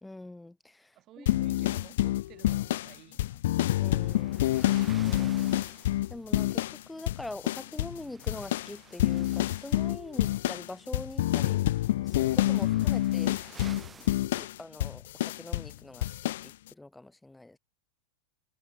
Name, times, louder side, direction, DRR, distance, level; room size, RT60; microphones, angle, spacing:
voice 1, 0.0-1.3 3.8-4.5 5.1-5.5 6.1-11.6 12.0-13.4 14.0-14.1 14.4-17.6, left 2 dB, 5° left, 1.9 m, -44 dB
voice 2, 0.9-3.4 3.8-4.9, right 14 dB, 35° right, 6.9 m, -55 dB
sound 1, 1.3-6.8 7.1-8.0 8.3-15.7 16.0-16.5, left 15 dB, 55° left, 0.5 m, -27 dB
sound 2, 3.7-14.2, right 6 dB, 20° right, 1.8 m, -53 dB
figure-of-eight pair, 90°, 0 cm